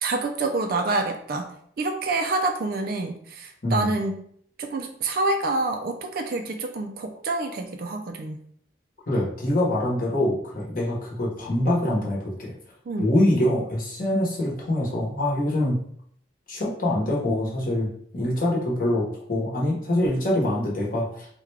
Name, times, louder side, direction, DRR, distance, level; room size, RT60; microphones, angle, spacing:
voice 1, 0.0-1.5 1.8-4.2 4.6-8.4 12.9-13.1, right 2 dB, 50° right, 5 dB, 0.3 m, -27 dB
voice 2, 9.1-12.5 13.0-15.8 16.5-21.3, left 1 dB, 45° left, -3 dB, 0.9 m, -24 dB
3.5 x 2.2 x 3.2 m, 0.63 s
head